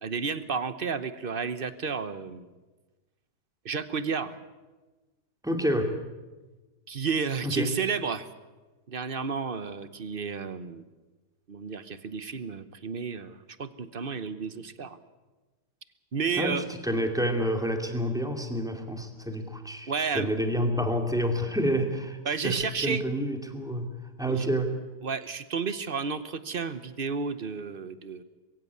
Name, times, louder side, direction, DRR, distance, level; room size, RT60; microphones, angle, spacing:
voice 1, 0.0-2.5 3.6-4.4 6.9-8.3 8.9-10.8 11.5-15.0 16.1-16.6 19.9-20.3 22.2-23.0 24.3-24.5 25.0-28.2, right 5 dB, 40° right, 13 dB, 0.9 m, -32 dB
voice 2, 5.4-5.9 7.4-7.7 16.4-24.7, equal, ahead, 5 dB, 2.3 m, -29 dB
22.5 x 16.0 x 9.5 m, 1.2 s
omnidirectional pair, 1.8 m